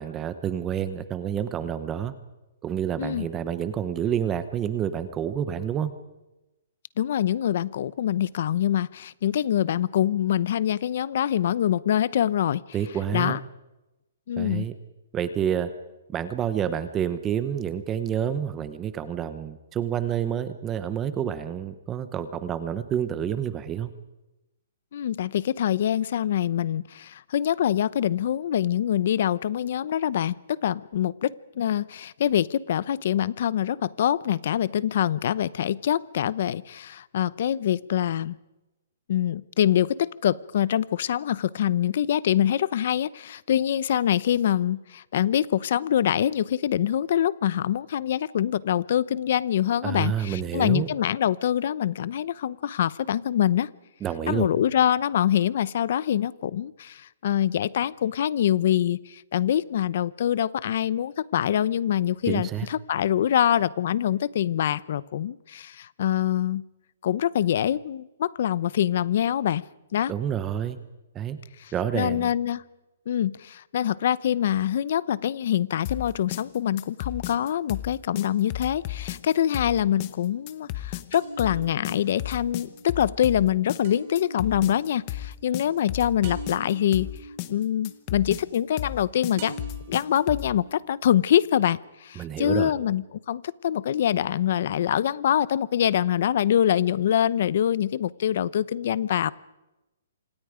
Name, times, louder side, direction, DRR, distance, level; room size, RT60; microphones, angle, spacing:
voice 1, 0.0-2.1 2.6-5.9 12.7-13.4 14.4-14.7 15.1-15.7 16.1-23.9 49.8-50.9 54.0-54.5 62.3-62.7 70.1-70.8 71.1-71.4 71.7-72.3 92.2-92.7, right 9 dB, 15° right, 12 dB, 0.9 m, -28 dB
voice 2, 7.0-12.6 13.1-13.4 14.3-14.7 24.9-38.4 39.1-53.7 54.3-66.6 67.0-69.6 69.9-70.1 71.6-72.6 73.1-87.1 87.5-89.6 89.9-99.3, left 10 dB, 45° left, 19 dB, 0.7 m, -25 dB
sound 1, 75.8-90.5, left 14 dB, 25° left, 1.1 m, -34 dB
sound 2, 78.7-79.5 81.1-89.1 89.4-91.5, right 3 dB, 30° right, 3.4 m, -44 dB
29.0 x 26.5 x 5.1 m, 0.99 s
hypercardioid pair, 175°, 0 cm